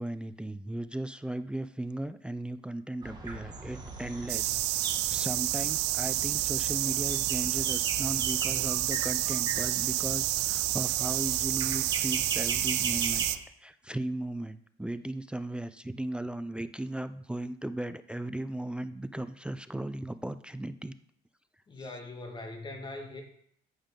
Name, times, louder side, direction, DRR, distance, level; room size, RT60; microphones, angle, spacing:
voice 1, 0.0-4.6 5.1-13.3 13.6-20.9, right 1 dB, 5° right, 12 dB, 0.4 m, -36 dB
sound 1, 3.0-13.4, right 3 dB, 25° right, 1.5 m, -39 dB
sound 2, 4.3-13.4, right 17 dB, 90° right, 0.4 m, -29 dB
voice 2, 21.7-23.2, left 2 dB, 25° left, 3 dB, 1.8 m, -41 dB
8.8 x 7.3 x 3.7 m, 0.65 s
cardioid pair, 110°, 17 cm